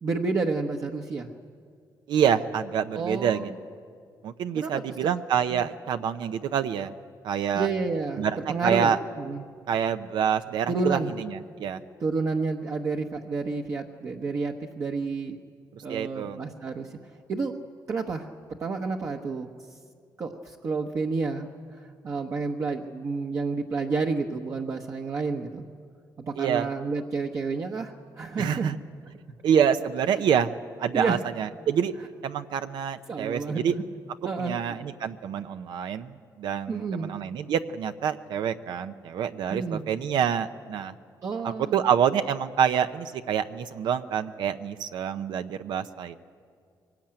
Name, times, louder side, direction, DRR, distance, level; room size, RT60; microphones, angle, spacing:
voice 1, 0.0-1.3 2.9-3.5 4.5-4.8 5.5-5.7 7.5-8.2 8.5-8.9 9.2-9.4 10.7-11.1 12.0-15.4 15.8-17.6 17.9-18.3 18.6-19.5 20.2-25.6 26.2-28.7 30.1-30.2 30.9-31.2 33.1-33.8 34.2-34.8 36.7-37.1 39.5-39.8 41.2-41.8, right 4 dB, 45° right, 1 dB, 1.1 m, -30 dB
voice 2, 2.1-3.5 4.2-6.9 7.2-7.7 8.2-9.0 9.7-11.8 15.9-16.4 26.4-26.7 28.4-28.8 29.4-30.5 30.8-31.9 32.2-33.7 34.4-40.9 41.4-46.2, right 8 dB, 80° right, 9 dB, 0.7 m, -27 dB
23.5 x 19.0 x 8.9 m, 2.1 s
cardioid pair, 145°, 8 cm